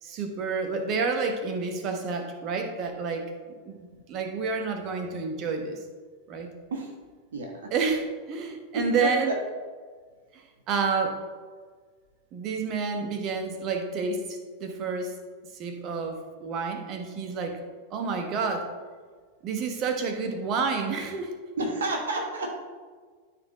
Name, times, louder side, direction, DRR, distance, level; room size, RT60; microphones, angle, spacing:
voice 1, 0.0-3.3 3.6-5.8 6.3-6.5 7.7-9.3 10.3-11.2 12.3-15.1 15.5-17.6 17.9-18.7 19.4-21.3, right 4 dB, 35° right, 5 dB, 1.2 m, -29 dB
voice 2, 7.3-7.7 8.7-9.4 21.6-22.6, right 2 dB, 65° right, 1 dB, 1.3 m, -30 dB
13.0 x 4.4 x 3.7 m, 1.6 s
figure-of-eight pair, 90°, 0 cm